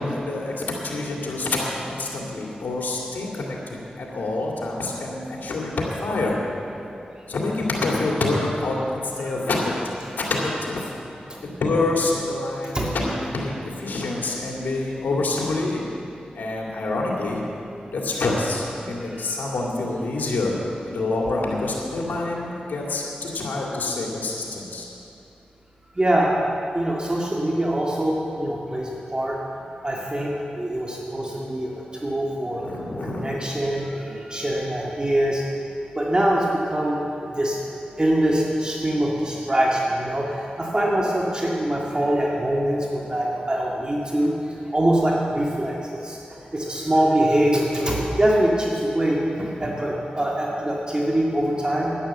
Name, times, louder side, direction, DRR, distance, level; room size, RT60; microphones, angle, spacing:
voice 1, 0.0-3.8 4.1-5.7 6.0-6.4 7.3-9.7 10.2-10.8 11.4-15.8 16.4-17.4 17.9-20.6 20.9-24.9 32.6-33.4, left 2 dB, 80° left, -2 dB, 2.4 m, -26 dB
voice 2, 18.9-19.4 26.0-26.4 26.7-29.4 29.8-32.6 33.0-35.4 35.9-37.6 38.0-45.8 46.0-46.2 46.5-51.9, right 1 dB, 30° right, -3 dB, 1.9 m, -24 dB
11.5 x 9.9 x 7.2 m, 2.7 s
cardioid pair, 50°, 3 cm